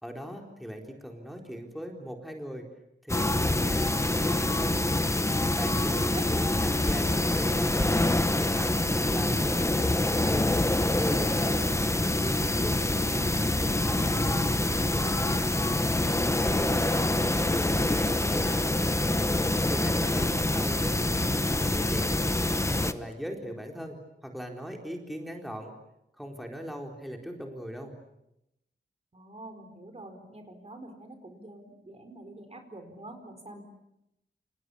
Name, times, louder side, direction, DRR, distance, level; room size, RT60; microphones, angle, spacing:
voice 1, 0.0-2.6 3.0-4.8 5.5-8.0 8.4-10.5 10.9-11.7 11.9-15.4 16.4-19.3 19.7-22.2 22.7-25.7 26.2-27.9, equal, ahead, 1 dB, 4.2 m, -39 dB
sound 1, 3.1-22.9, left 2 dB, 15° left, 1.2 m, -26 dB
voice 2, 5.9-6.2 16.6-17.1 29.1-33.6, right 2 dB, 35° right, 6 dB, 4.6 m, -44 dB
29.5 x 28.5 x 7.1 m, 0.85 s
wide cardioid pair, 120°, 19 cm